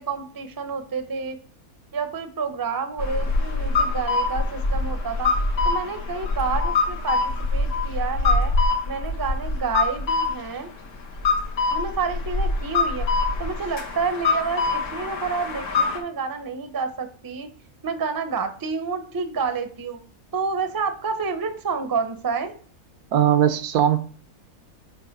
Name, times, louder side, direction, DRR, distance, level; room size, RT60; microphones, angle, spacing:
voice 1, 0.0-1.4 1.9-5.3 5.6-7.2 7.5-8.5 8.9-10.7 11.7-13.1 13.4-17.5 17.8-20.0 20.3-22.5, right 5 dB, 25° right, 8 dB, 0.4 m, -29 dB
sound 1, 3.0-16.0, left 3 dB, 90° left, 1.9 m, -24 dB
voice 2, 23.1-24.0, right 10 dB, 85° right, 10 dB, 1.2 m, -19 dB
7.6 x 3.0 x 5.9 m, 0.43 s
omnidirectional pair, 1.6 m